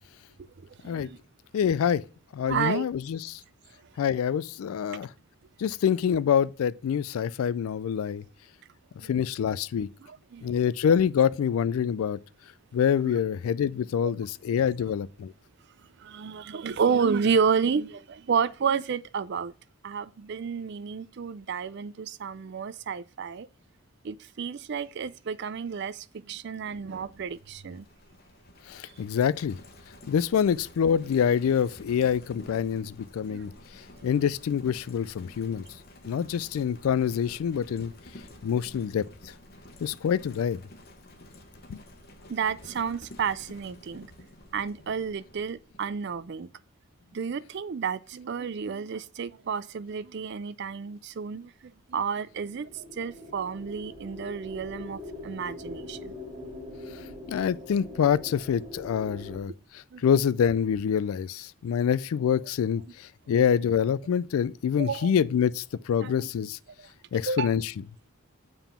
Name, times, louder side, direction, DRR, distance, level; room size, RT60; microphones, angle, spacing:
voice 1, 0.6-1.2 2.5-2.9 9.0-9.1 10.0-10.6 13.0-13.2 14.8-14.9 16.0-19.5 19.8-23.5 24.0-27.9 33.3-33.4 42.3-44.1 44.5-46.5 47.1-56.1 59.9-60.0 64.8-65.1 66.0-66.3 66.8-66.9 67.3-67.5, right 6 dB, 50° right, 0.4 m, -31 dB
voice 2, 1.5-2.0 2.3-3.4 4.0-5.1 5.6-8.2 9.1-9.9 10.4-12.2 12.7-15.3 28.7-29.6 30.1-33.5 34.0-35.6 36.1-37.9 38.4-39.0 39.8-40.6 41.7-41.8 56.9-57.0 57.3-59.5 60.0-66.6 67.1-67.7, left 8 dB, 70° left, 0.3 m, -26 dB
Livestock farm animals working animals, 26.7-46.3, left 1 dB, 45° left, 1.0 m, -50 dB
Artillery Drone Banana Yellow, 52.3-59.4, left 1 dB, 15° right, 1.9 m, -42 dB
7.0 x 3.7 x 5.5 m
head